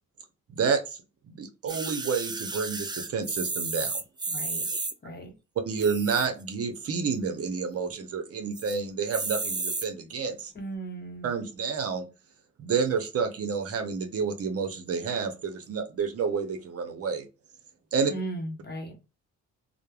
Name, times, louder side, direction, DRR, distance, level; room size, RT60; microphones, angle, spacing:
voice 1, 0.5-1.0 1.3-4.0 5.6-10.5 11.2-12.0 12.6-17.3 17.9-18.1, right 5 dB, 50° right, 0.7 m, -29 dB
sound 1, 1.7-4.9 5.7-6.4 6.9-7.0 7.1-7.2 7.6-8.0 8.5-8.8 9.1-9.9 10.6-10.7, right 3 dB, 15° right, 0.4 m, -32 dB
voice 2, 4.3-4.7 5.0-5.4 10.5-11.3 18.1-19.0, right 2 dB, 35° left, 0.9 m, -37 dB
3.1 x 2.0 x 2.3 m
cardioid pair, 90°, 30 cm